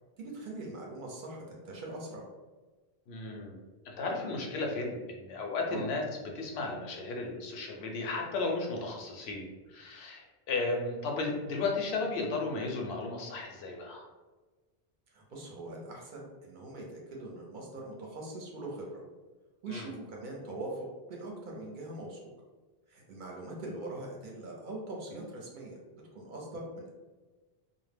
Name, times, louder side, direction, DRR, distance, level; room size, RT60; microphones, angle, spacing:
voice 1, 0.2-2.3 5.7-5.8 15.1-19.0 19.6-22.3 22.9-25.8 26.1-26.9, right 2 dB, 60° right, -1 dB, 0.6 m, -42 dB
voice 2, 3.1-3.6 3.8-6.0 6.3-14.1 19.7-19.9, left 3 dB, 85° left, 1 dB, 0.8 m, -34 dB
2.0 x 2.0 x 3.3 m, 1.2 s
omnidirectional pair, 1.0 m